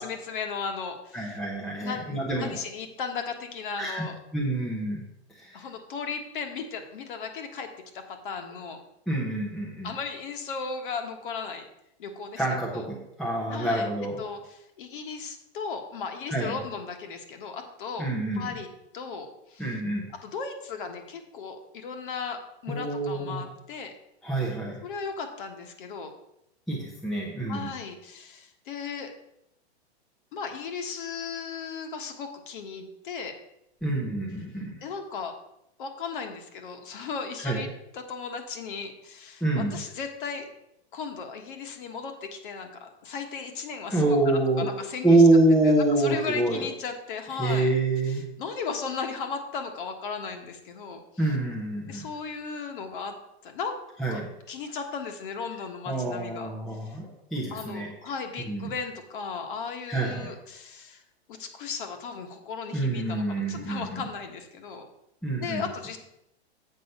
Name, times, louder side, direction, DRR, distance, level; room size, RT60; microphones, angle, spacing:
voice 1, 0.0-1.4 1.7-4.1 5.5-7.7 7.9-8.8 9.8-11.6 12.0-12.4 12.7-12.8 13.5-13.9 14.2-18.1 18.3-18.7 18.9-19.8 20.2-23.9 24.8-26.1 27.5-29.1 30.3-33.3 34.8-35.3 35.8-37.7 37.9-40.5 40.9-45.2 45.6-47.7 48.1-51.3 51.9-53.1 53.4-53.8 54.1-54.2 54.5-56.5 56.8-57.0 57.5-61.0 61.3-64.9 65.4-66.0, left 5 dB, 50° left, 5 dB, 1.4 m, -36 dB
voice 2, 1.1-2.6 3.8-4.0 4.3-5.0 5.3-5.6 9.1-9.9 12.4-14.2 16.3-16.6 18.0-18.4 19.6-20.1 22.7-23.4 24.2-24.8 26.7-27.7 33.8-34.8 37.4-37.6 39.4-39.8 43.9-44.7 45.0-46.6 47.3-48.3 51.2-52.1 54.0-54.3 55.9-57.9 58.5-58.7 59.9-60.3 62.7-64.1 65.2-65.6, right 2 dB, ahead, -3 dB, 0.6 m, -26 dB
7.9 x 5.6 x 5.4 m, 0.81 s
supercardioid pair, 170°, 33 cm